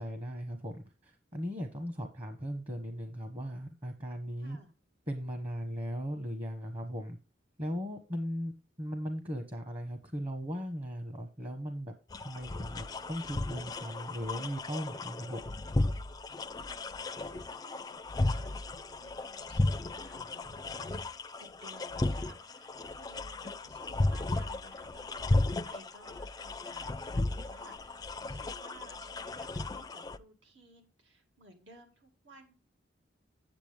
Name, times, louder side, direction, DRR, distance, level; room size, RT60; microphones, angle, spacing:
voice 1, 0.0-4.6 5.1-7.2 7.6-8.5 8.8-11.9 12.2-15.4, equal, 30° right, 6 dB, 1.2 m, -38 dB
voice 2, 4.4-4.7 17.1-21.1 21.4-25.3 25.6-32.5, right 1 dB, 80° right, 2 dB, 2.2 m, -56 dB
sound 1, 12.1-30.2, left 2 dB, 20° left, 0.4 m, -35 dB
8.4 x 8.4 x 3.5 m, 0.31 s
head